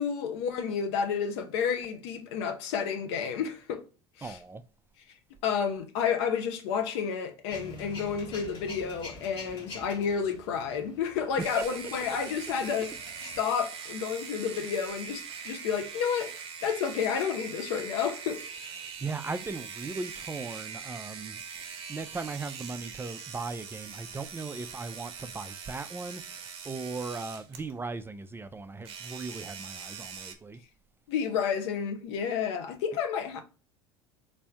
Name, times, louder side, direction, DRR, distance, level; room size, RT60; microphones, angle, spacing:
voice 1, 0.0-3.8 4.2-4.4 5.4-12.9 13.4-16.3 16.6-18.8 31.1-33.4, left 7 dB, 70° left, 0.7 m, -30 dB
voice 2, 4.2-4.6 11.5-11.6 18.8-30.6, right 4 dB, 15° right, 0.4 m, -38 dB
Male speech man speaking / Vehicle / Engine starting, 7.5-13.4, left 2 dB, 35° left, 1.7 m, -46 dB
sound 1, 11.4-27.7 28.8-30.3, right 6 dB, 40° right, 0.9 m, -42 dB
3.3 x 2.6 x 3.2 m
hypercardioid pair, 80°, 14 cm